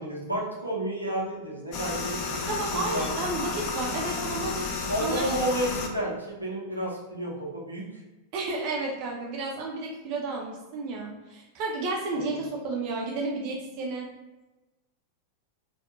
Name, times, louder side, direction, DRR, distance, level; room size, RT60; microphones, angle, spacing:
voice 1, 0.0-2.3 2.6-3.1 4.9-7.9 12.1-12.4, right 1 dB, 80° right, -4 dB, 0.8 m, -31 dB
sound 1, 1.7-5.9, left 4 dB, 40° left, 0.5 m, -32 dB
voice 2, 2.5-4.7 5.0-5.3 8.3-14.1, right 3 dB, 45° right, -1 dB, 0.6 m, -32 dB
4.3 x 2.4 x 2.3 m, 1.1 s
figure-of-eight pair, 90°, 0 cm